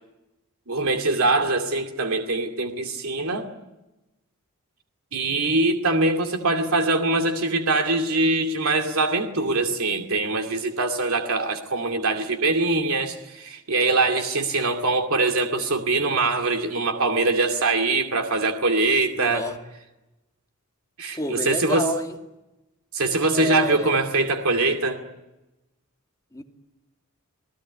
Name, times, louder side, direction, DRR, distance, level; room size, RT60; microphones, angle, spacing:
voice 1, 0.7-3.5 5.1-19.5 21.0-21.9 22.9-25.0, right 3 dB, 80° right, 4 dB, 2.4 m, -23 dB
voice 2, 19.2-19.6 21.1-22.2 23.3-24.0 26.3-26.4, left 1 dB, 15° left, 2 dB, 2.4 m, -29 dB
28.0 x 18.5 x 9.6 m, 1.0 s
head